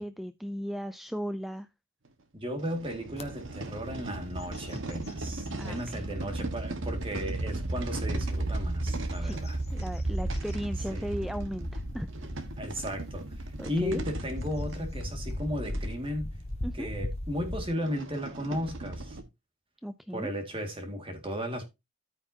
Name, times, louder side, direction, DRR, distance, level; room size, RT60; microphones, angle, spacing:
voice 1, 0.0-1.7 5.6-6.0 9.2-9.4 9.7-12.1 13.6-14.0 16.6-16.9 19.8-20.3, equal, ahead, 0.4 m, -36 dB
sound 1, 2.0-2.1 2.6-15.9 16.6-16.7 17.0-17.1 17.6-19.2, right 2 dB, 60° right, 1.4 m, -35 dB
voice 2, 2.3-9.6 10.9-11.1 12.6-16.3 16.7-19.2 20.1-21.7, equal, 25° right, 2.1 m, -35 dB
sound 2, 3.2-3.3 3.8-4.1 4.4-5.9 6.5-6.6 8.3-17.7, left 1 dB, 30° left, 1.2 m, -39 dB
14.0 x 5.7 x 2.8 m
head